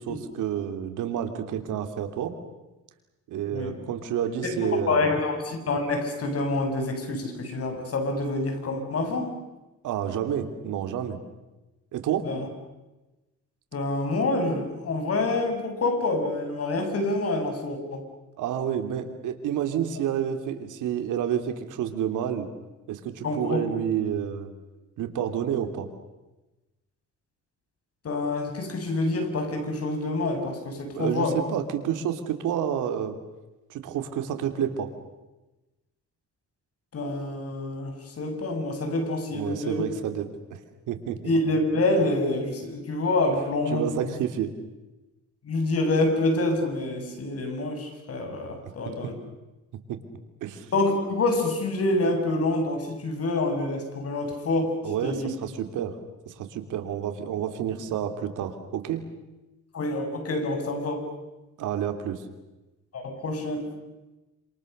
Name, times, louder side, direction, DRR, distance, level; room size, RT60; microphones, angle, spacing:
voice 1, 0.0-2.3 3.3-5.1 9.8-11.2 11.9-12.3 18.4-22.5 22.9-24.5 25.0-25.9 30.9-33.2 33.7-34.9 39.3-40.6 40.9-41.3 43.7-44.5 48.8-49.1 49.9-50.0 50.4-50.7 54.8-56.0 56.3-59.0 61.6-62.2, right 9 dB, 85° right, 7 dB, 3.1 m, -29 dB
voice 2, 4.4-9.3 12.2-12.5 13.7-18.1 23.2-23.7 28.0-31.4 36.9-39.8 41.2-44.1 45.4-49.1 50.7-54.7 55.0-55.3 59.7-61.1 62.9-63.7, left 2 dB, 50° left, 5 dB, 6.7 m, -27 dB
27.5 x 27.5 x 6.7 m, 1.1 s
cardioid pair, 90°, 30 cm